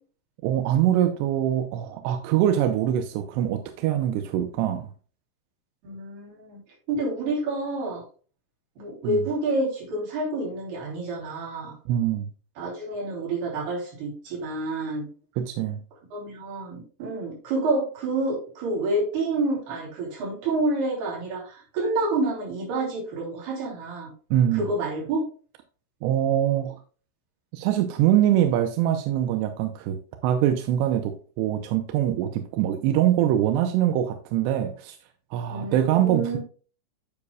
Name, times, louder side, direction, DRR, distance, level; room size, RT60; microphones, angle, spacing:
voice 1, 0.4-4.9 9.0-9.2 11.9-12.3 15.4-15.8 24.3-24.7 26.0-26.8 27.5-30.0 30.2-35.0 35.3-36.4, right 11 dB, 80° right, 7 dB, 2.6 m, -23 dB
voice 2, 5.8-6.6 6.9-8.0 8.8-11.8 12.6-15.1 16.1-24.1 24.5-25.2 35.5-36.4, right 2 dB, 60° right, -2 dB, 5.0 m, -28 dB
9.7 x 7.2 x 2.3 m, 0.38 s
omnidirectional pair, 5.2 m